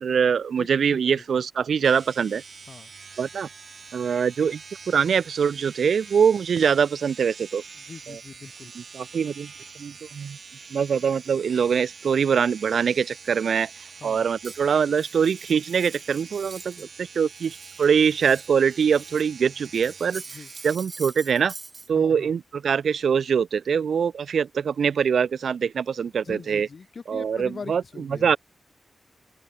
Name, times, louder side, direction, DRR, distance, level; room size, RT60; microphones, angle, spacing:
voice 1, 0.0-2.4 3.2-3.5 3.9-4.6 4.9-7.6 8.1-8.2 8.8-9.5 9.8-10.4 10.7-13.7 14.0-20.2 20.6-21.5 21.9-26.7 27.1-27.8 28.2-28.4, right 7 dB, 85° right, 0.3 m, -23 dB
voice 2, 0.6-1.2 2.7-2.9 7.7-8.7 14.0-14.3 20.3-20.5 21.9-22.3 26.2-28.3, left 5 dB, 50° left, 1.0 m, -42 dB
sound 1, 1.8-20.8, right 5 dB, 55° right, 1.0 m, -45 dB
Cutlery silverware, 14.4-16.9 17.2-19.3 19.6-21.9, right 3 dB, 35° right, 4.2 m, -44 dB
open air
wide cardioid pair, 150°, 0 cm